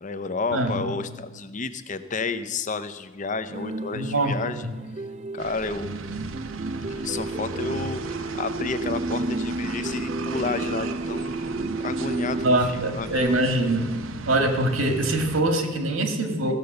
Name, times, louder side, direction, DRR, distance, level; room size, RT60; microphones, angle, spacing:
voice 1, 0.0-4.6 5.3-5.9 6.9-13.3, left 4 dB, 40° left, 11 dB, 0.6 m, -31 dB
voice 2, 0.5-0.8 3.9-4.7 12.4-13.9 14.2-16.5, right 1 dB, 90° right, 5 dB, 1.7 m, -23 dB
sound 1, 3.5-12.6, right 2 dB, 35° right, 0.4 m, -32 dB
sound 2, 5.4-15.4, right 3 dB, 75° right, 0.7 m, -36 dB
15.5 x 6.9 x 6.5 m, 1.3 s
head